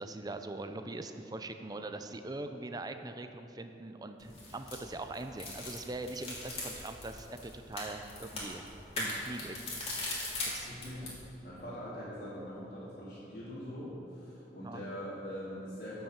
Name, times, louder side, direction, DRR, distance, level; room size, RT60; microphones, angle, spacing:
voice 1, 0.0-8.7 9.0-9.6 10.5-10.7 11.0-11.3 14.6-14.8, right 2 dB, 20° right, 7 dB, 0.5 m, -42 dB
sound 1, 4.2-11.2, left 2 dB, 35° left, 2.6 m, -40 dB
voice 2, 10.4-11.1 11.4-16.0, equal, 50° left, -10 dB, 2.3 m, -43 dB
14.5 x 5.6 x 5.8 m, 2.9 s
head